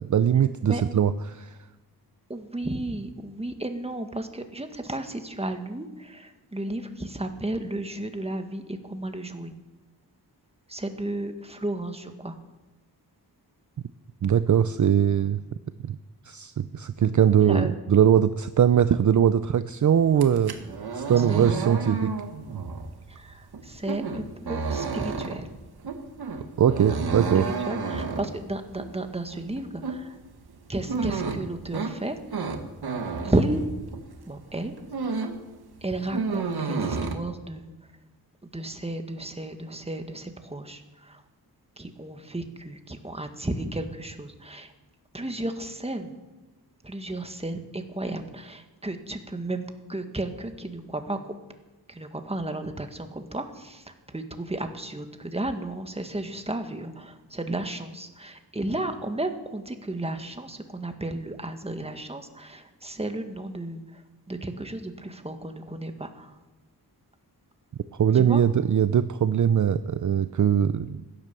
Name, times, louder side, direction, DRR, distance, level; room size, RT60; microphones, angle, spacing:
voice 1, 0.0-1.6 14.2-15.4 15.8-16.0 16.2-20.5 20.9-22.1 22.5-22.6 26.6-27.5 68.0-71.0, right 9 dB, 50° right, 13 dB, 0.5 m, -21 dB
voice 2, 2.3-9.5 10.7-12.3 17.5-17.7 21.2-21.5 23.1-25.5 27.3-30.1 30.7-32.2 33.2-33.6 34.3-34.7 35.8-37.7 38.5-41.2 41.8-44.7 45.1-46.1 46.8-49.6 49.9-51.3 51.9-63.8 64.3-66.3 68.1-68.4, right 1 dB, 15° right, 6 dB, 1.6 m, -33 dB
sound 1, 20.1-34.2 34.5-35.5 35.7-37.2, right 4 dB, 70° right, 1.6 m, -31 dB
16.0 x 10.5 x 6.8 m, 1.1 s
wide cardioid pair, 80°, 40 cm